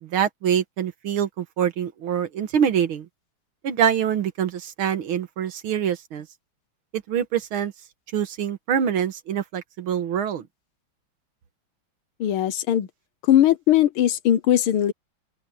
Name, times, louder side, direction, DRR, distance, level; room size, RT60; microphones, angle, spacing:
voice 1, 0.0-3.1 3.6-6.3 7.1-7.7 8.1-10.4, right 8 dB, 85° right, 2.1 m, -25 dB
voice 2, 12.2-12.9 13.2-14.9, left 11 dB, 90° left, 1.8 m, -19 dB
open air
omnidirectional pair, 2.3 m